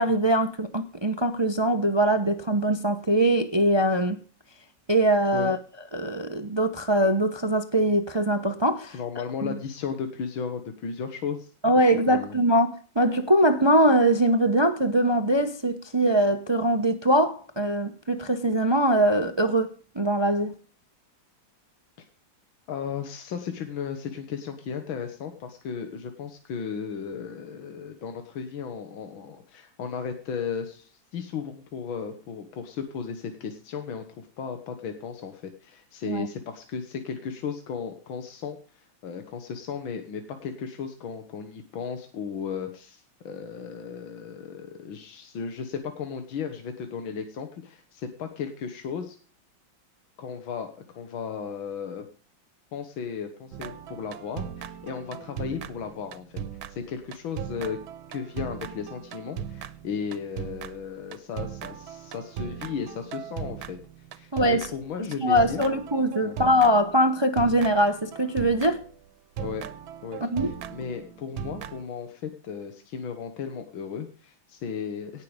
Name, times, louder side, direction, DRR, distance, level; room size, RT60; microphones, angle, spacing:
voice 1, 0.0-4.2 4.9-5.6 5.9-9.0 11.6-20.5 36.1-36.3 64.3-64.7 65.2-68.8 70.2-70.5, right 1 dB, 35° right, 0.4 m, -22 dB
voice 2, 8.9-11.5 11.9-12.4 22.7-49.2 50.2-52.1 52.7-56.4 56.7-57.8 58.1-63.8 64.1-65.6 66.2-66.4 69.4-69.7 70.0-75.2, left 6 dB, 85° left, 2.1 m, -35 dB
sound 1, 53.5-69.0 69.4-71.8, right 9 dB, 90° right, 1.6 m, -38 dB
17.5 x 6.7 x 5.1 m
omnidirectional pair, 2.2 m